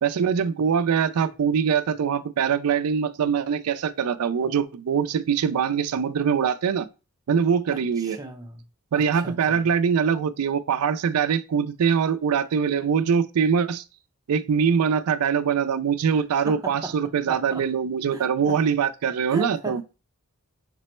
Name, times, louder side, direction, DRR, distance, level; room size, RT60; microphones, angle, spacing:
voice 1, 0.0-6.9 7.3-8.2 8.9-13.8 14.3-19.8, right 7 dB, 80° right, 0.4 m, -23 dB
voice 2, 7.7-8.6 8.9-9.6 16.4-16.9 17.3-17.6 18.1-18.6 19.3-19.8, right 2 dB, 15° right, 0.7 m, -36 dB
5.9 x 2.1 x 4.2 m
head